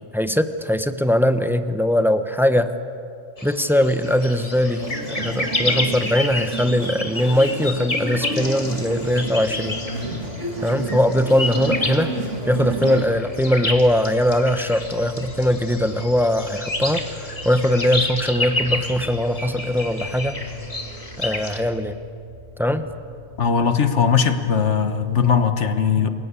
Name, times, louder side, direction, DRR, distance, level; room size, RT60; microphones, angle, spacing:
voice 1, 0.0-2.7 3.4-9.8 10.6-12.1 12.5-20.4 21.2-22.0 22.6-22.9 26.0-26.1, left 1 dB, ahead, 9 dB, 1.0 m, -21 dB
sound 1, 3.4-21.6, left 2 dB, 30° left, 2.0 m, -30 dB
sound 2, 4.8-13.1, right 2 dB, 85° right, 2.5 m, -31 dB
sound 3, 8.4-23.7, left 1 dB, 35° right, 4.8 m, -40 dB
voice 2, 23.4-26.1, left 6 dB, 75° left, 9 dB, 1.6 m, -19 dB
29.0 x 22.0 x 8.4 m, 2.5 s
omnidirectional pair, 1.2 m